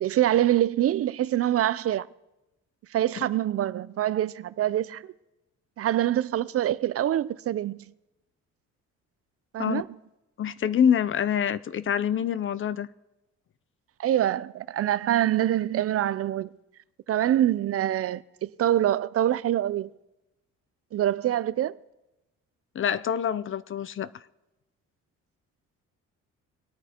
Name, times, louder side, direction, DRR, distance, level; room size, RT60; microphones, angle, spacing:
voice 1, 0.0-2.1 2.9-5.0 5.8-7.8 9.5-9.9 14.0-16.5 17.1-19.9 20.9-21.8, right 12 dB, 50° right, 0.4 m, -25 dB
voice 2, 10.4-12.9 22.7-24.1, left 8 dB, 45° left, 0.5 m, -26 dB
21.0 x 9.1 x 2.9 m
cardioid pair, 90°, 30 cm